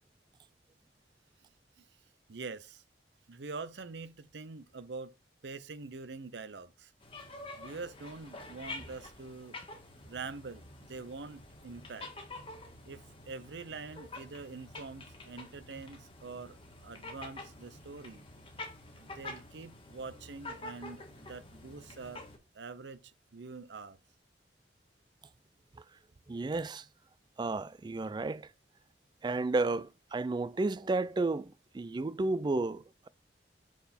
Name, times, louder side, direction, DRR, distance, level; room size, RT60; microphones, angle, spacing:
voice 1, 2.3-2.8 3.3-5.2 5.4-6.9 7.6-9.6 10.1-12.1 12.8-18.3 19.0-22.3 22.5-24.0, right 4 dB, 80° right, 0.7 m, -45 dB
sound 1, 7.0-22.4, left 2 dB, 30° left, 1.8 m, -48 dB
voice 2, 26.3-26.9 27.4-28.5 29.2-33.1, right 3 dB, 25° right, 0.4 m, -32 dB
6.2 x 5.8 x 4.2 m
head